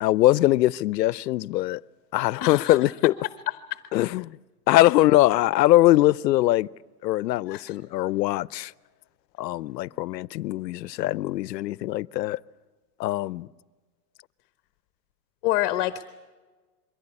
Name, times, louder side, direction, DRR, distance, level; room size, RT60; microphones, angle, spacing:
voice 1, 0.0-1.8 2.1-3.1 3.9-4.3 4.7-6.7 7.0-8.7 9.4-12.4 13.0-13.5, left 16 dB, 85° left, 0.7 m, -22 dB
voice 2, 2.4-2.9 3.7-3.8 7.5-7.8 15.4-16.0, left 15 dB, 40° left, 1.0 m, -27 dB
23.0 x 16.0 x 9.9 m
supercardioid pair, 155°, 48 cm